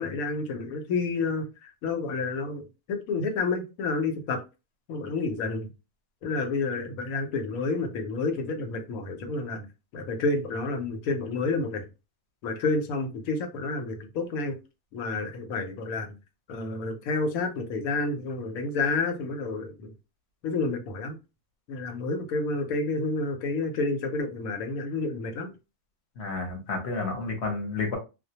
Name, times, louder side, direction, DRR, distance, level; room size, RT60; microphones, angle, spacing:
voice 1, 0.0-2.6 2.9-4.4 4.9-5.7 6.2-9.7 9.9-11.8 12.4-14.6 14.9-16.1 16.5-19.9 20.4-21.2 21.7-25.5, left 3 dB, 85° left, 1.1 m, -29 dB
voice 2, 26.2-28.0, left 3 dB, 55° left, 0.9 m, -31 dB
2.3 x 2.1 x 2.7 m
omnidirectional pair, 1.4 m